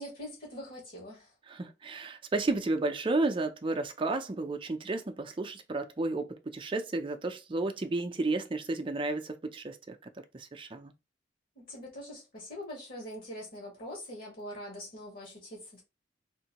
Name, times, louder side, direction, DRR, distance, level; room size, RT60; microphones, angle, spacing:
voice 1, 0.0-1.3 11.7-15.8, equal, 55° left, 1.7 m, -43 dB
voice 2, 1.5-10.0 10.3-10.9, right 2 dB, 30° right, 0.4 m, -32 dB
3.7 x 2.6 x 2.9 m
head